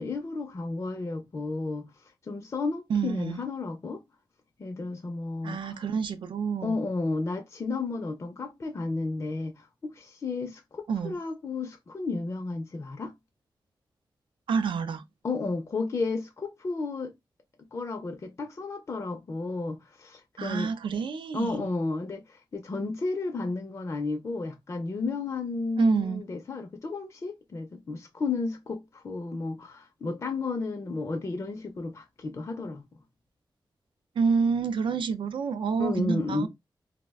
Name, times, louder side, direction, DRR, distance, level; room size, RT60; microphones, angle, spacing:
voice 1, 0.0-1.9 2.3-4.0 4.6-5.8 6.6-13.1 15.2-17.1 17.7-20.7 21.3-32.9 35.8-36.5, left 3 dB, 35° left, 0.4 m, -32 dB
voice 2, 2.9-3.4 5.4-6.8 10.9-11.2 14.5-15.0 20.4-21.7 25.8-26.2 34.2-36.5, right 5 dB, 90° right, 0.4 m, -28 dB
2.4 x 2.1 x 3.4 m
wide cardioid pair, 145°, 8 cm